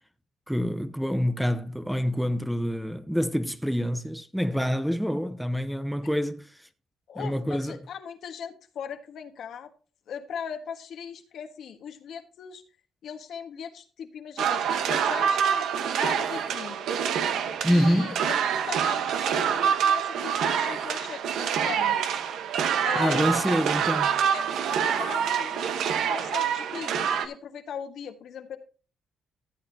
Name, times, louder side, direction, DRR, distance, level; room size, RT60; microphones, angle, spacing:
voice 1, 0.5-6.5 7.2-7.8 17.6-18.1 22.9-24.2, equal, ahead, 0.7 m, -26 dB
voice 2, 7.1-9.7 10.1-12.6 13.0-16.9 17.7-18.4 18.7-22.0 22.8-23.4 24.3-25.7 26.1-28.6, left 7 dB, 70° left, 1.4 m, -39 dB
sound 1, 14.4-27.3, right 8 dB, 80° right, 1.1 m, -26 dB
14.0 x 8.5 x 2.8 m
cardioid pair, 90°, 0 cm